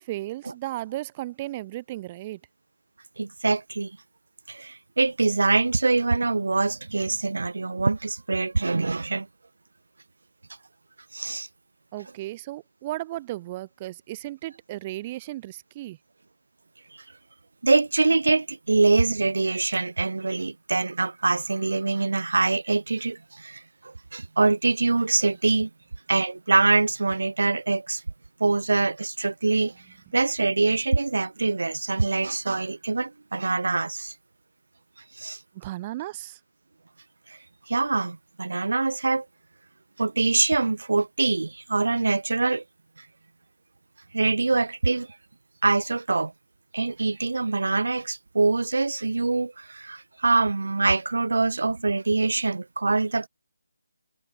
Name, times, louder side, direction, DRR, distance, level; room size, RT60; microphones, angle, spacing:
voice 1, 0.0-2.4 11.9-16.0 35.5-36.4, right 16 dB, 20° right, 4.0 m, -35 dB
voice 2, 3.2-4.0 4.5-9.3 11.1-11.5 16.9-17.0 17.6-25.7 26.1-28.0 28.4-29.8 30.1-34.1 35.1-35.4 37.3-37.4 37.7-39.3 40.0-42.6 43.0-43.1 44.1-45.1 45.6-46.3 46.7-53.3, right 3 dB, 70° right, 2.3 m, -24 dB
figure-of-eight pair, 155°, 0 cm